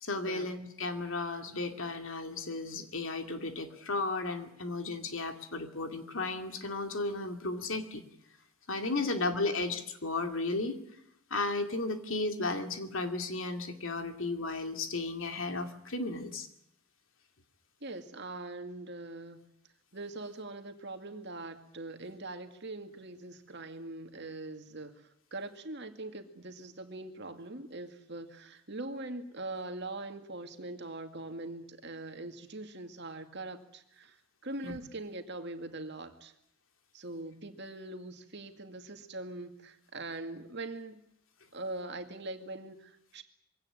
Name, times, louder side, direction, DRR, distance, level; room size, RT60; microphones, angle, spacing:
voice 1, 0.0-8.0 8.7-10.8 11.3-16.5 34.6-34.8, left 3 dB, 65° left, 6 dB, 2.4 m, -34 dB
voice 2, 9.0-9.3 17.8-19.4 19.9-34.2 34.4-36.3 36.9-41.0 41.5-43.2, right 2 dB, 50° right, 6 dB, 2.2 m, -42 dB
23.0 x 17.0 x 9.9 m, 0.80 s
head